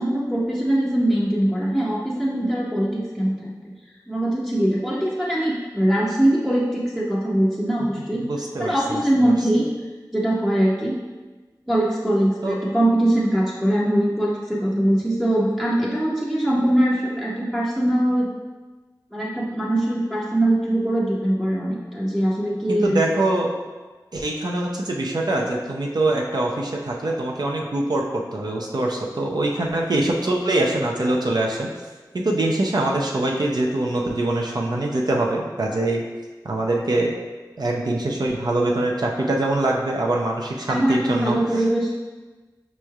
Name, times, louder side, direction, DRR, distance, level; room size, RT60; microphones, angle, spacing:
voice 1, 0.0-3.5 4.1-8.3 8.6-9.7 10.1-11.0 11.7-18.3 19.1-23.0 40.7-41.9, right 1 dB, 5° right, -7 dB, 0.6 m, -22 dB
voice 2, 8.2-9.0 12.4-12.6 22.7-23.5 24.1-31.7 32.1-36.0 36.4-37.1 37.6-41.6, right 2 dB, 60° right, -1 dB, 0.5 m, -23 dB
5.2 x 3.1 x 2.3 m, 1.3 s
wide cardioid pair, 50°, 8 cm